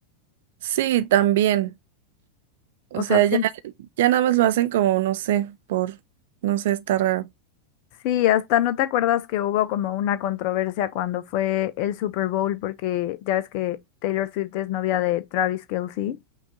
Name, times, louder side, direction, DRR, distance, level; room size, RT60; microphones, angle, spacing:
voice 1, 0.6-1.7 2.9-3.5 4.0-6.0 6.4-7.3, right 13 dB, 55° right, 0.3 m, -21 dB
voice 2, 2.9-3.4 8.0-13.8 14.0-16.2, left 12 dB, 45° left, 0.4 m, -24 dB
5.9 x 2.3 x 3.7 m
figure-of-eight pair, 90°, 0 cm